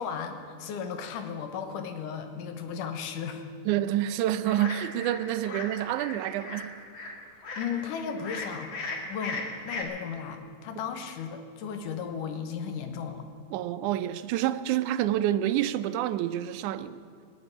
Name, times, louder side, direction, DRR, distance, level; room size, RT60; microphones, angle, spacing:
voice 1, 0.0-3.4 7.6-8.7 9.1-13.3, left 7 dB, 85° left, 2.7 m, -35 dB
voice 2, 3.7-6.8 13.5-17.1, right 12 dB, 80° right, 2.0 m, -28 dB
sound 1, 4.4-9.8, left 3 dB, 45° left, 2.1 m, -38 dB
18.5 x 7.2 x 10.0 m
omnidirectional pair, 3.7 m